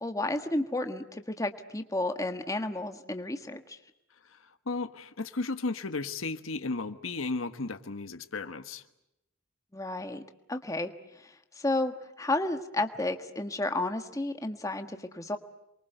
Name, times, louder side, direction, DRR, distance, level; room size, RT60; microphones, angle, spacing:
voice 1, 0.0-3.8 9.7-10.2 10.5-15.4, left 2 dB, 15° left, 7 dB, 1.4 m, -32 dB
voice 2, 4.2-8.8, left 3 dB, 85° left, 10 dB, 1.3 m, -34 dB
28.5 x 23.5 x 7.9 m, 0.86 s
head